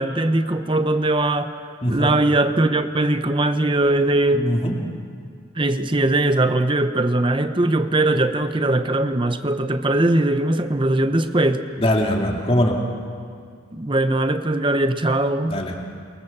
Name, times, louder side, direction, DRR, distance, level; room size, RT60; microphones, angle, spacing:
voice 1, 0.0-1.5 1.9-4.5 5.5-11.6 13.7-15.6, right 2 dB, 25° right, 9 dB, 0.9 m, -20 dB
voice 2, 1.8-2.1 4.3-4.8 11.8-12.8 15.5-15.8, equal, 30° left, 0 dB, 2.8 m, -21 dB
28.5 x 23.5 x 7.4 m, 2.3 s
head